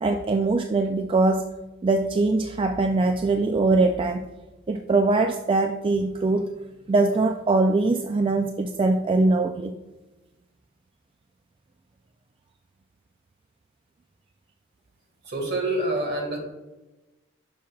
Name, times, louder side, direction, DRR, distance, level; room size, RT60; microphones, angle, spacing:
voice 1, 0.0-1.5 1.8-4.3 4.7-6.5 6.9-9.7, right 3 dB, 25° right, 5 dB, 0.3 m, -22 dB
voice 2, 15.2-16.4, right 1 dB, 55° right, 1 dB, 1.8 m, -27 dB
10.0 x 6.2 x 2.4 m, 1.1 s
head